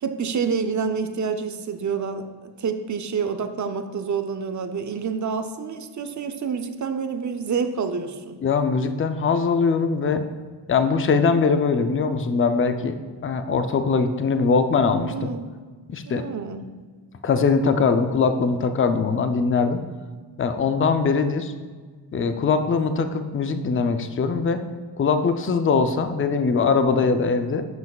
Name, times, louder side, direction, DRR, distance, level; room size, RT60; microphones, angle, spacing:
voice 1, 0.0-8.4 15.0-15.5 16.0-16.7, right 6 dB, 40° right, 8 dB, 0.6 m, -28 dB
voice 2, 8.4-10.3 10.7-12.9 13.2-15.3 15.9-16.3 17.2-19.8 20.4-21.5 22.1-24.6 25.0-27.6, left 5 dB, 30° left, 9 dB, 0.5 m, -21 dB
9.1 x 5.6 x 2.4 m, 1.4 s
cardioid pair, 75°, 44 cm